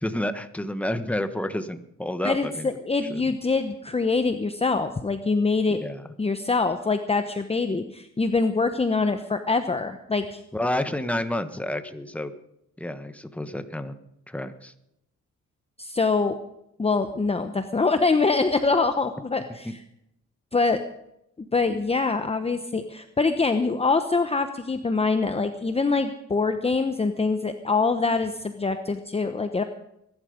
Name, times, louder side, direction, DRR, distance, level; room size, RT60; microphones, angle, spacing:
voice 1, 0.0-2.7 3.0-3.2 5.7-6.0 10.5-12.3 12.8-14.0 14.3-14.7 19.6-19.8, left 1 dB, 5° left, 9 dB, 1.3 m, -30 dB
voice 2, 2.2-5.8 6.2-10.4 15.8-16.4 16.8-19.8 20.5-20.8 21.5-29.6, left 4 dB, 20° left, 8 dB, 0.9 m, -24 dB
21.5 x 12.0 x 5.2 m, 0.81 s
cardioid pair, 100°, 29 cm